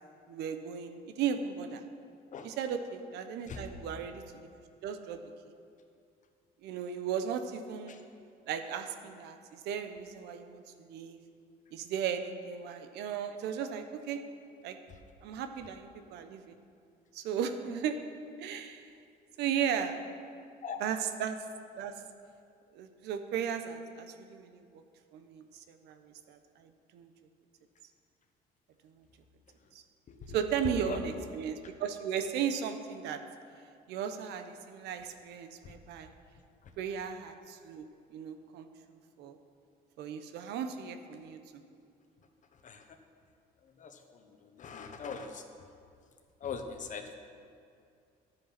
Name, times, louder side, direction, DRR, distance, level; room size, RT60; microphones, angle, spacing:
voice 1, 0.3-1.8 2.4-4.2 4.8-5.2 6.6-8.0 8.5-11.2 11.7-14.2 14.6-14.8 15.2-16.6 17.1-17.9 18.4-18.8 19.4-20.0 20.8-21.4 21.8-22.0 22.7-24.8 25.1-27.1 28.8-28.9 29.7-29.8 30.3-33.2 33.9-36.1 36.8-39.4 40.0-41.4, right 8 dB, 85° right, 8 dB, 1.0 m, -36 dB
voice 2, 43.6-45.4 46.4-47.2, left 5 dB, 50° left, 6 dB, 1.2 m, -42 dB
12.0 x 9.0 x 6.0 m, 2.4 s
cardioid pair, 110°, 17 cm